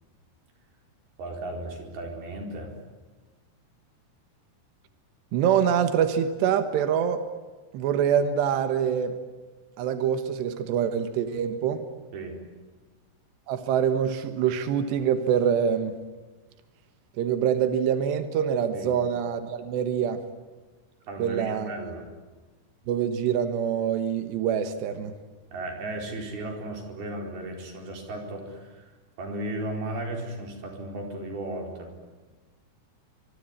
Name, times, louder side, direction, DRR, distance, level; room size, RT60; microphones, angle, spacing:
voice 1, 1.2-2.7 12.1-12.4 18.7-19.0 21.1-22.1 25.5-31.9, right 2 dB, 65° right, 3 dB, 6.3 m, -35 dB
voice 2, 5.3-7.2 7.7-9.2 9.8-11.9 13.5-15.9 17.2-20.2 21.2-21.7 22.9-25.1, right 8 dB, 85° right, 9 dB, 3.6 m, -25 dB
25.0 x 24.0 x 9.9 m, 1.3 s
omnidirectional pair, 4.8 m